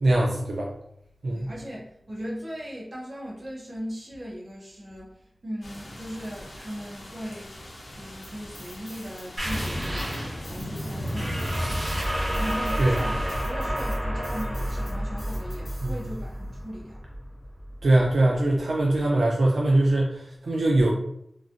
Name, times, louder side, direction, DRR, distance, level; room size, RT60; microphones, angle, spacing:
voice 1, 0.0-0.7 1.2-1.5 12.8-13.0 15.8-16.1 17.8-20.9, right 1 dB, 85° right, -3 dB, 0.4 m, -22 dB
voice 2, 1.3-7.6 7.9-17.0, equal, 50° right, -4 dB, 0.9 m, -38 dB
sound 1, 5.6-13.4, left 1 dB, 70° left, 0.7 m, -42 dB
sound 2, 8.2-9.2 9.5-16.3, left 1 dB, 25° left, 1.0 m, -48 dB
sound 3, 9.4-18.6, equal, 30° right, 1.3 m, -30 dB
3.0 x 2.4 x 2.5 m, 0.77 s
wide cardioid pair, 90°, 0 cm